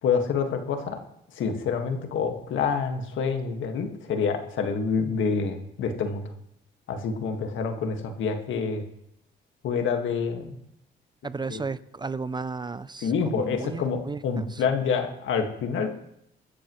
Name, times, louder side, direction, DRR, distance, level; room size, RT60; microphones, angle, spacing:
voice 1, 0.0-1.0 1.3-6.3 6.9-8.8 9.6-10.6 11.5-11.6 13.0-15.9, left 5 dB, 75° left, 5 dB, 1.9 m, -27 dB
voice 2, 11.2-14.6, right 4 dB, 20° right, 16 dB, 0.5 m, -34 dB
23.5 x 13.5 x 3.2 m, 0.77 s
cardioid pair, 90°, 20 cm